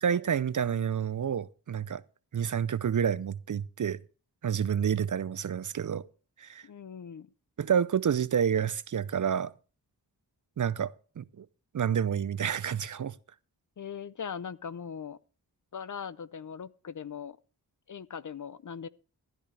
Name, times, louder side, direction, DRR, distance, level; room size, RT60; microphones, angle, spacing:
voice 1, 0.0-2.0 2.3-4.0 4.4-6.0 6.4-6.6 7.6-9.5 10.6-11.5 11.7-13.1, right 8 dB, 45° right, 0.5 m, -29 dB
voice 2, 6.6-7.3 13.8-15.2 15.7-17.4 17.9-18.9, left 7 dB, 45° left, 0.6 m, -40 dB
13.5 x 11.0 x 3.3 m
cardioid pair, 45°, 41 cm